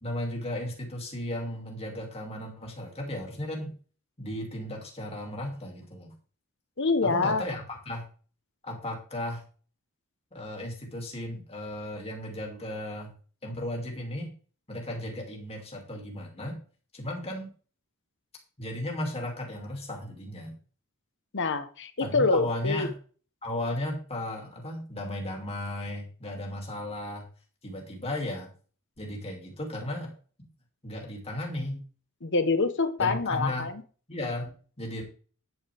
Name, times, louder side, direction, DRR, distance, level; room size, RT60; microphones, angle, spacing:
voice 1, 0.0-3.7 4.2-6.1 7.0-8.0 8.6-9.4 10.3-13.1 13.4-14.3 14.7-16.6 16.9-17.5 18.6-20.6 22.0-22.9 23.4-27.3 27.6-28.5 29.0-30.1 30.8-31.8 33.0-33.7 34.1-35.0, left 1 dB, 30° left, 0 dB, 2.7 m, -35 dB
voice 2, 6.8-7.4 21.3-22.9 32.2-33.8, left 3 dB, 55° left, 10 dB, 1.2 m, -26 dB
9.5 x 8.9 x 3.5 m, 0.40 s
head